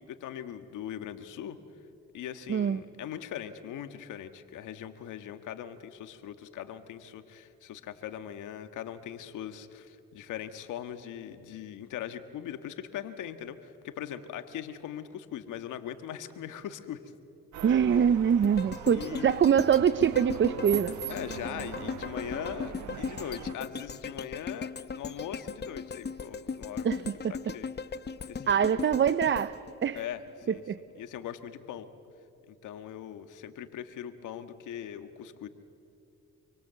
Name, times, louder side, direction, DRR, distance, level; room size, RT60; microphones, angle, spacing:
voice 1, 0.0-1.6 2.1-17.0 17.9-18.1 18.9-19.4 21.1-26.9 27.3-27.7 28.3-28.8 29.9-30.6 31.0-31.9 32.5-35.5, left 10 dB, 85° left, 10 dB, 1.6 m, -40 dB
voice 2, 2.5-2.8 17.6-21.0 26.8-27.3 28.5-30.0 30.5-30.8, right 8 dB, 40° right, 15 dB, 0.7 m, -24 dB
sound 1, 17.5-23.5, right 10 dB, 70° right, 1.3 m, -41 dB
sound 2, 18.4-30.6 31.0-31.1, left 5 dB, 35° left, 1.0 m, -38 dB
27.0 x 24.5 x 8.2 m, 2.5 s
cardioid pair, 90°, 30 cm